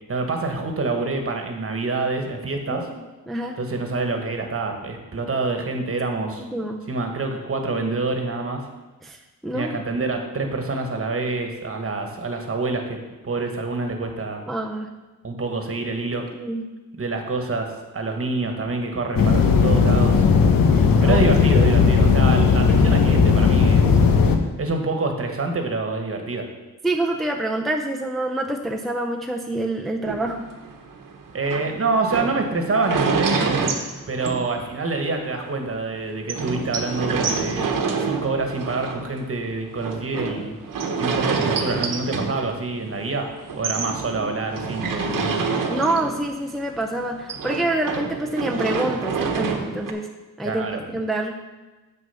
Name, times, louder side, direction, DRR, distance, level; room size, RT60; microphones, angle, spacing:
voice 1, 0.1-2.9 3.6-6.5 6.9-8.7 9.5-14.4 15.2-16.2 17.0-20.3 21.0-24.0 24.6-26.5 31.3-33.6 34.1-37.7 38.0-40.6 41.0-43.3 43.6-45.4 50.4-50.8, right 3 dB, 40° right, 4 dB, 1.3 m, -26 dB
voice 2, 3.3-3.6 6.5-6.8 9.0-9.9 14.5-14.9 16.3-16.7 21.0-21.4 26.8-30.5 45.7-50.1 50.4-51.5, right 1 dB, ahead, 1 dB, 0.6 m, -26 dB
sound 1, 19.2-24.4, left 5 dB, 85° left, 1.0 m, -16 dB
sound 2, 30.0-35.0 35.4-35.5 35.7-35.8 36.3-43.1 43.4-46.5 46.7-49.9, right 4 dB, 75° right, 1.1 m, -27 dB
7.7 x 6.4 x 5.6 m, 1.2 s
wide cardioid pair, 105°, 33 cm